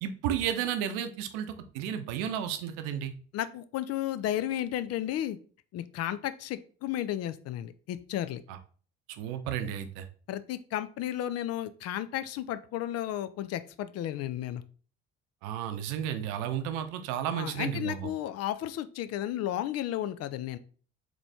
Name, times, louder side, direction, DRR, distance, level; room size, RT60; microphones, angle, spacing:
voice 1, 0.0-3.1 8.5-8.6 9.1-10.0 15.4-18.1, right 9 dB, 75° right, 9 dB, 0.6 m, -33 dB
voice 2, 3.3-5.4 5.7-8.4 10.3-14.6 17.3-20.6, left 12 dB, 55° left, 14 dB, 0.5 m, -33 dB
3.9 x 3.2 x 3.4 m, 0.41 s
hypercardioid pair, 55°, 30 cm